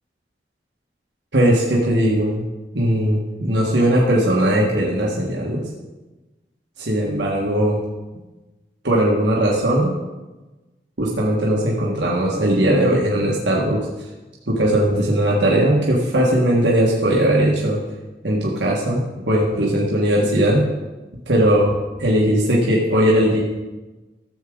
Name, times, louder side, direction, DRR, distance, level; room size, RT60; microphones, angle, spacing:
voice 1, 1.3-2.4 2.7-5.6 6.8-7.8 8.8-9.9 11.0-13.8 14.5-17.8 18.2-20.7 21.3-21.7 22.0-23.4, right 1 dB, 85° right, -4 dB, 1.6 m, -18 dB
13.5 x 7.5 x 3.9 m, 1.2 s
head